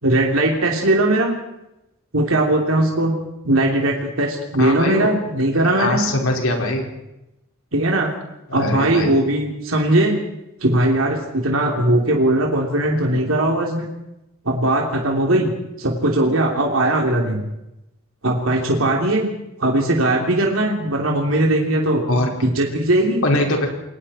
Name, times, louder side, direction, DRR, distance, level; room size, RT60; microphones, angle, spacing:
voice 1, 0.0-1.4 2.1-3.1 3.5-6.0 7.7-8.1 8.5-10.1 10.6-13.9 14.4-15.5 15.8-17.4 18.2-19.3 19.6-22.0 22.4-23.2, right 1 dB, 75° right, 0 dB, 3.3 m, -19 dB
voice 2, 4.6-5.1 5.6-6.9 8.5-9.2 22.1-22.3 23.2-23.7, left 1 dB, 90° left, 1 dB, 5.1 m, -22 dB
29.0 x 22.5 x 4.4 m, 0.91 s
head